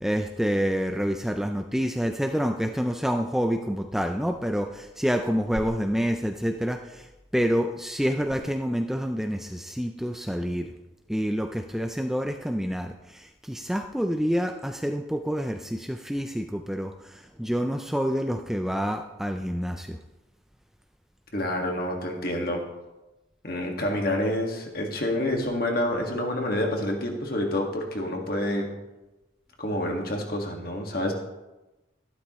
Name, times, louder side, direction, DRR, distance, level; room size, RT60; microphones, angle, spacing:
voice 1, 0.0-7.1 7.3-10.7 11.1-20.0, equal, ahead, 4 dB, 0.4 m, -28 dB
voice 2, 21.3-22.6 23.4-28.7 29.6-31.1, left 1 dB, 50° left, 1 dB, 1.8 m, -28 dB
12.5 x 11.5 x 3.1 m, 1.0 s
head